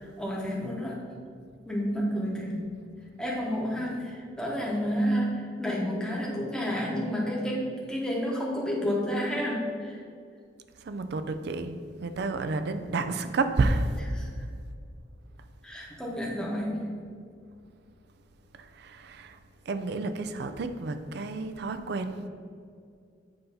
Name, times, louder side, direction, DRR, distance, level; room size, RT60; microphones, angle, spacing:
voice 1, 0.0-1.0 1.6-2.6 3.2-10.0 14.1-14.3 15.6-16.9, equal, 5° left, -4 dB, 0.9 m, -30 dB
voice 2, 10.8-13.9 18.6-19.4 19.7-22.3, right 3 dB, 60° right, 9 dB, 0.4 m, -30 dB
7.8 x 2.7 x 5.6 m, 2.3 s
head